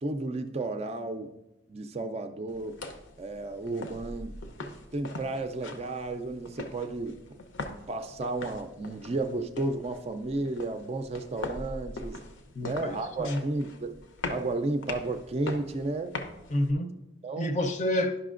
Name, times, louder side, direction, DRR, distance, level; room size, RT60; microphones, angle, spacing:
voice 1, 0.0-1.3 1.7-2.8 3.2-4.4 4.6-7.2 7.9-12.2 12.6-14.0 14.3-16.1 17.2-17.6, right 2 dB, 30° right, 0.4 m, -33 dB
sound 1, 2.5-16.7, left 2 dB, 70° left, 0.7 m, -42 dB
voice 2, 12.5-13.4 16.5-16.9 17.4-18.2, left 1 dB, 35° left, 0.6 m, -29 dB
11.0 x 5.7 x 2.5 m
head